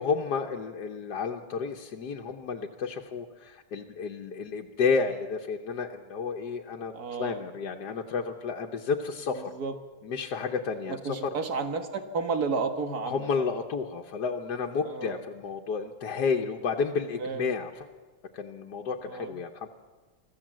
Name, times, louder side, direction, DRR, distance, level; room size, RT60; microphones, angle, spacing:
voice 1, 0.0-6.9 7.2-9.5 10.0-11.2 13.1-17.9 18.3-19.7, left 5 dB, 85° left, 2 dB, 1.6 m, -31 dB
voice 2, 6.9-7.4 9.6-9.7 10.9-13.3 14.8-15.2 17.2-17.5 19.1-19.3, right 4 dB, 70° right, 6 dB, 2.2 m, -32 dB
25.0 x 14.5 x 7.6 m, 1.4 s
omnidirectional pair, 1.7 m